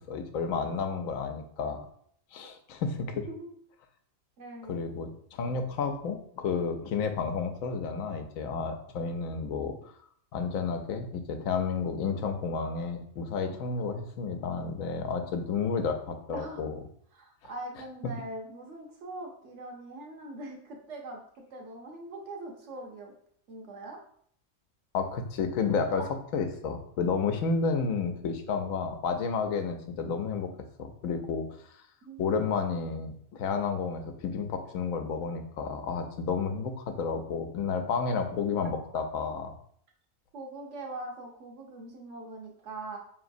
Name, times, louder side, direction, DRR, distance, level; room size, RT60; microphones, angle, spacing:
voice 1, 0.1-1.8 2.3-3.3 4.7-9.9 10.3-16.8 24.9-30.5 30.8-31.8 32.2-39.5, left 5 dB, 85° left, 6 dB, 1.0 m, -31 dB
voice 2, 4.4-4.8 16.3-16.6 17.1-21.2 21.5-23.1 23.5-24.0 25.9-26.1 32.0-32.2 40.3-43.0, right 2 dB, 65° right, 0 dB, 1.1 m, -42 dB
4.8 x 3.1 x 2.6 m, 0.62 s
omnidirectional pair, 1.4 m